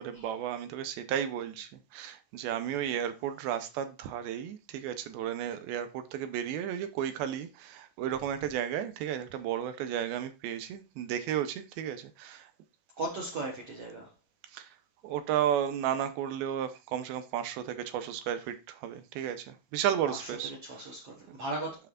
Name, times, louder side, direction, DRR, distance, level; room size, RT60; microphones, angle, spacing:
voice 1, 0.0-12.5 14.5-14.7 15.0-20.9, right 10 dB, 85° right, 2.6 m, -33 dB
voice 2, 13.0-14.1 20.1-21.8, right 2 dB, 55° right, 1.7 m, -37 dB
8.7 x 5.8 x 2.3 m
omnidirectional pair, 4.2 m